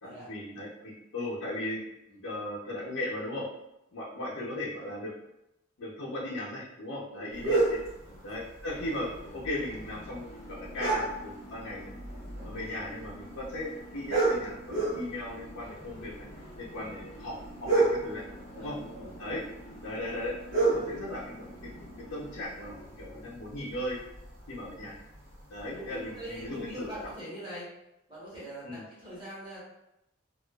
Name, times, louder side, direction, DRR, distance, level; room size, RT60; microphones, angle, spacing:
voice 1, 0.0-1.8 2.2-3.5 3.9-5.1 5.8-7.8 8.2-11.9 12.4-16.2 16.6-18.2 18.5-18.8 19.2-19.4 19.8-24.0 24.5-25.0 25.5-26.9 28.6-28.8, left 1 dB, 90° left, -7 dB, 0.7 m, -37 dB
voice 2, 4.3-4.9 7.1-7.4 8.0-8.5 18.6-19.1 25.6-27.7 28.1-29.6, equal, 20° right, -9 dB, 1.0 m, -44 dB
sound 1, 7.3-27.1, right 3 dB, 75° right, 0.9 m, -34 dB
sound 2, 8.8-22.5, equal, 30° left, 0.6 m, -49 dB
2.3 x 2.3 x 2.3 m, 0.87 s
head